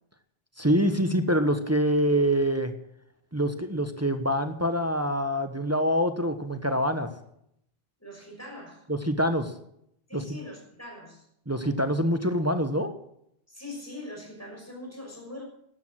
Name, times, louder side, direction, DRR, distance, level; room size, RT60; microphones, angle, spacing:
voice 1, 0.6-2.7 3.3-7.1 8.9-9.5 10.1-10.2 11.5-12.9, equal, 15° right, 8 dB, 1.1 m, -25 dB
voice 2, 8.0-8.9 10.1-11.3 13.5-15.4, left 1 dB, 15° left, 0 dB, 5.9 m, -42 dB
12.5 x 12.0 x 7.6 m, 0.74 s
omnidirectional pair, 1.0 m